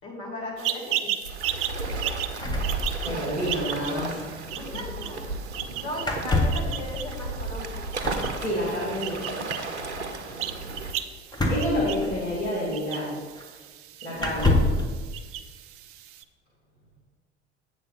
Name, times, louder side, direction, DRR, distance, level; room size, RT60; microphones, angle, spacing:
voice 1, 0.0-1.1 4.5-5.4 5.8-7.9 14.0-14.4, left 1 dB, 40° left, -3 dB, 2.6 m, -37 dB
sound 1, 0.6-16.2, right 11 dB, 40° right, 0.5 m, -36 dB
Waves surf, 1.2-10.9, right 2 dB, 85° right, 0.7 m, -34 dB
sound 2, 2.4-3.5 3.7-3.8 4.0-4.2 6.0-6.7 8.0-8.4 11.3-12.5 13.4-13.5 14.2-14.9, left 2 dB, 10° left, 1.3 m, -26 dB
voice 2, 3.0-4.3 8.4-9.2 11.3-13.2 14.0-14.6, equal, 80° left, -6 dB, 1.9 m, -29 dB
8.3 x 6.0 x 4.0 m, 1.5 s
figure-of-eight pair, 65°, 33 cm